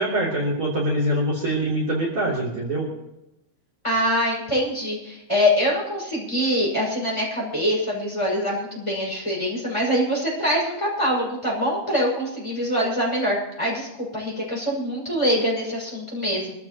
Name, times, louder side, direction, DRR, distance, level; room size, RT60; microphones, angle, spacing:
voice 1, 0.0-2.9, right 1 dB, 40° right, -4 dB, 3.8 m, -24 dB
voice 2, 3.8-16.5, equal, 10° left, -4 dB, 5.9 m, -24 dB
25.0 x 15.0 x 3.0 m, 0.91 s
omnidirectional pair, 3.6 m